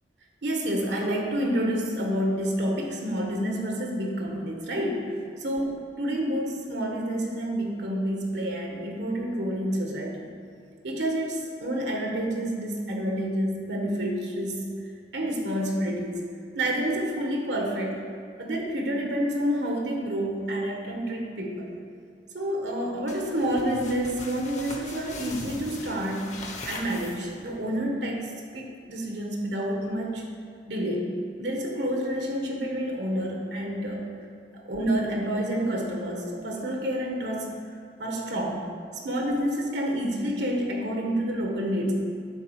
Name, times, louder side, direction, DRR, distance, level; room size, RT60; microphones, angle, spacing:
voice 1, 0.4-5.7 6.0-10.3 10.8-14.7 15.1-16.1 16.5-18.0 18.4-21.8 22.3-30.2 30.7-34.1 34.6-37.5 38.0-38.6 38.9-41.9, equal, 70° right, 0 dB, 1.4 m, -29 dB
sound 1, 23.1-27.6, left 3 dB, 40° left, 0.9 m, -40 dB
9.5 x 4.1 x 6.4 m, 2.4 s
head